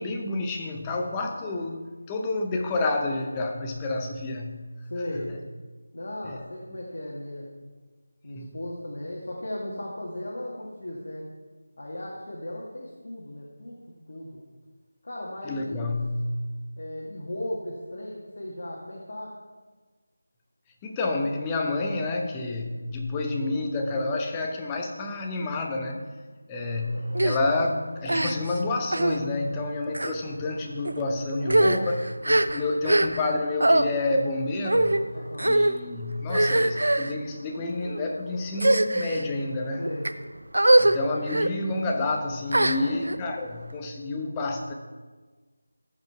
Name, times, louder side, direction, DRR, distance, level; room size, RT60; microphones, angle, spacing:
voice 1, 0.0-4.7 8.4-8.5 15.4-16.5 20.8-26.1 26.5-35.1 35.4-39.9 40.8-44.7, left 2 dB, 15° left, 2 dB, 0.7 m, -29 dB
voice 2, 4.9-5.3 5.9-7.5 8.2-11.3 11.8-13.8 14.1-14.4 15.0-15.9 16.8-19.3 26.9-27.3 35.1-35.6 39.8-40.1 42.6-43.0, left 1 dB, 60° left, -4 dB, 1.8 m, -36 dB
sound 1, 27.1-27.4 28.0-28.6 28.9-29.2 29.9-30.1 30.8-31.0 31.4-33.3 33.6-33.8 34.6-35.0 35.4-35.7 36.3-37.1 37.8-38.0 38.5-39.2 39.8-40.1 40.5-40.9 41.3-41.5 42.5-43.2, right 1 dB, 75° right, 0.6 m, -22 dB
14.5 x 5.2 x 4.5 m, 1.4 s
figure-of-eight pair, 165°, 0 cm